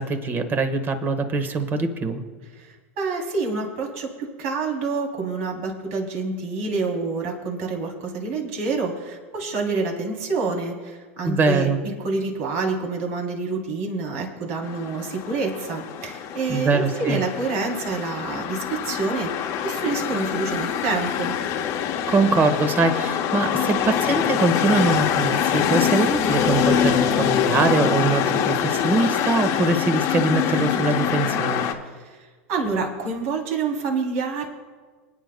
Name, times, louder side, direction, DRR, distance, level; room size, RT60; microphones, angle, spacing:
voice 1, 0.0-2.2 11.2-11.8 16.5-17.2 22.1-31.6, right 3 dB, 30° right, 8 dB, 1.4 m, -22 dB
voice 2, 2.5-11.7 12.0-21.3 32.0-32.2 32.5-34.5, right 4 dB, 65° right, 1 dB, 3.2 m, -27 dB
sound 1, 14.6-31.7, left 8 dB, 45° left, 1.0 m, -24 dB
26.0 x 9.3 x 2.3 m, 1.4 s
hypercardioid pair, 105°, 7 cm